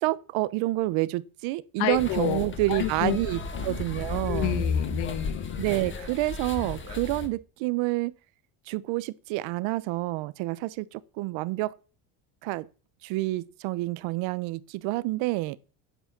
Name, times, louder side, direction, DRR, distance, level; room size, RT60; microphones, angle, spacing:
voice 1, 0.0-4.6 5.6-8.1 8.7-11.7 12.4-12.7 13.0-15.6, right 19 dB, 80° right, 1.0 m, -28 dB
voice 2, 1.8-2.4 2.7-3.2 3.5-3.8 4.3-5.6, left 13 dB, 75° left, 1.5 m, -29 dB
sound 1, 1.9-7.3, left 4 dB, 25° left, 1.6 m, -33 dB
10.0 x 8.3 x 6.0 m
cardioid pair, 145°, 46 cm